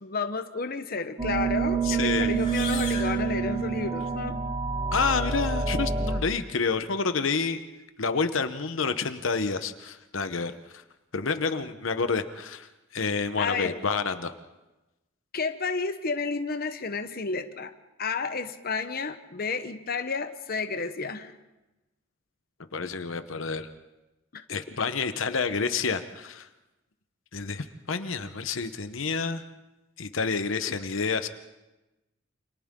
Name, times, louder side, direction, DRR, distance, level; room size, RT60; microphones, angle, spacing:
voice 1, 0.0-4.4 13.4-13.8 15.3-17.7 18.0-21.3 24.3-24.6 30.6-30.7, left 4 dB, 50° left, 8 dB, 1.0 m, -31 dB
sound 1, 1.2-6.2, right 5 dB, 20° right, 1.1 m, -28 dB
voice 2, 1.8-2.3 4.9-7.6 8.0-10.5 11.1-12.7 12.9-14.3 22.7-23.7 24.5-26.5 27.3-29.4 30.0-31.3, left 4 dB, 75° left, 9 dB, 1.0 m, -28 dB
sound 2, 2.3-4.2, left 5 dB, 25° left, 6.0 m, -39 dB
29.5 x 27.0 x 3.8 m, 1.0 s
head